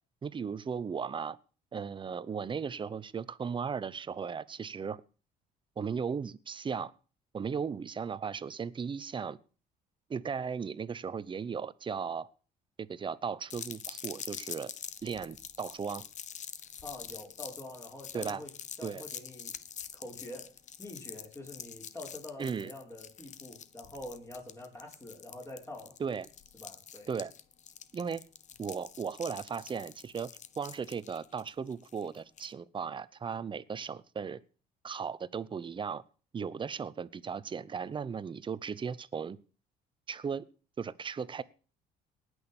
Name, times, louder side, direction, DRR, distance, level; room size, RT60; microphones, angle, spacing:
voice 1, 0.2-1.4 1.7-5.0 5.8-6.9 7.3-9.4 10.1-12.3 12.8-14.7 15.0-16.0 18.1-18.4 18.8-19.0 22.4-22.7 26.0-26.3 27.1-27.3 27.9-28.2 28.6-30.3 30.6-34.4 34.8-36.0 36.3-39.4 40.1-40.5 40.8-41.4, right 6 dB, 30° right, 18 dB, 0.8 m, -36 dB
sound 1, 13.5-32.5, left 8 dB, 45° left, 0.9 m, -46 dB
voice 2, 16.8-18.5 18.8-19.6 19.9-20.5 20.8-26.0 26.5-27.1, left 1 dB, 15° left, -1 dB, 5.3 m, -46 dB
18.5 x 6.4 x 7.0 m, 0.38 s
cardioid pair, 110°, 17 cm